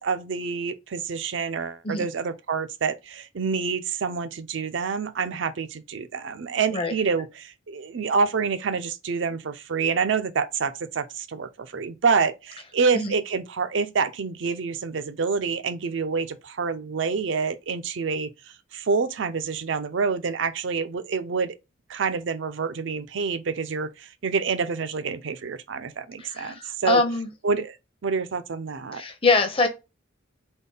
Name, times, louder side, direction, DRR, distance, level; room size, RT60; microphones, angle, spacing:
voice 1, 0.0-18.3 18.7-21.6 21.9-27.0 27.4-27.8 28.0-29.0, right 5 dB, 65° right, 0.5 m, -27 dB
voice 2, 26.2-27.3 28.9-29.7, left 3 dB, 25° left, 0.7 m, -24 dB
3.6 x 2.2 x 3.8 m
head